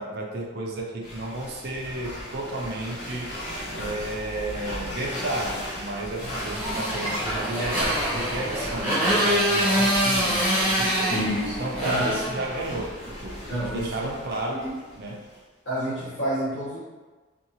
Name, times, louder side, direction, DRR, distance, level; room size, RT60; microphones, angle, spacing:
voice 1, 0.0-3.3 3.8-11.2 11.6-14.6 14.9-15.3, right 1 dB, 50° right, -1 dB, 0.4 m, -32 dB
sound 1, 1.0-15.4, equal, 85° left, 1.2 m, -36 dB
Motorcycle, 6.2-12.9, equal, 5° left, 0.8 m, -25 dB
voice 2, 11.1-12.2 13.5-14.0 14.5-14.7 15.6-16.8, equal, 60° left, -12 dB, 0.9 m, -28 dB
2.7 x 2.3 x 2.7 m, 1.3 s
head